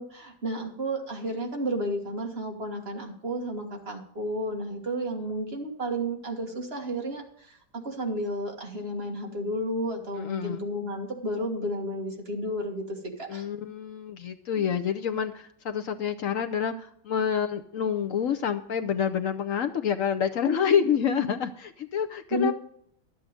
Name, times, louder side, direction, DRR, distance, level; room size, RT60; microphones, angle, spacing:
voice 1, 0.0-7.6 7.8-13.5 14.6-14.7 20.4-21.3 22.3-22.5, right 1 dB, 35° right, 2 dB, 1.8 m, -32 dB
voice 2, 10.2-10.7 13.3-22.5, left 8 dB, 65° left, 8 dB, 0.9 m, -28 dB
12.0 x 8.4 x 5.0 m, 0.67 s
omnidirectional pair, 1.9 m